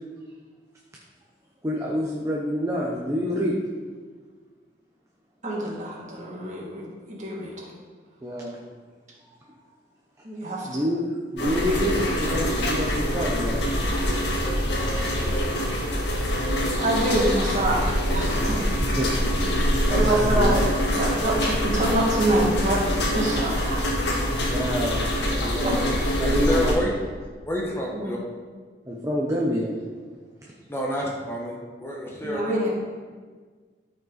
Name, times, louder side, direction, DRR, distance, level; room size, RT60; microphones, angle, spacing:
voice 1, 1.6-3.6 8.2-8.6 9.2-9.6 10.4-13.6 13.9-14.3 15.2-15.4 18.2-19.1 19.9-20.5 21.7-22.1 24.5-26.7 28.9-29.8 30.4-30.5, equal, 15° right, -3 dB, 1.0 m, -28 dB
voice 2, 5.4-7.7 10.2-10.8 16.8-18.9 19.9-22.8 23.1-24.1 25.6-25.8 27.9-28.1 32.2-32.7, right 1 dB, 45° right, -4 dB, 2.3 m, -26 dB
sound 1, 11.4-26.7, equal, 80° left, 1.7 m, -24 dB
voice 3, 26.2-26.9 27.5-28.2 30.7-32.7, equal, 15° left, -2 dB, 1.2 m, -28 dB
13.5 x 5.6 x 4.1 m, 1.5 s
head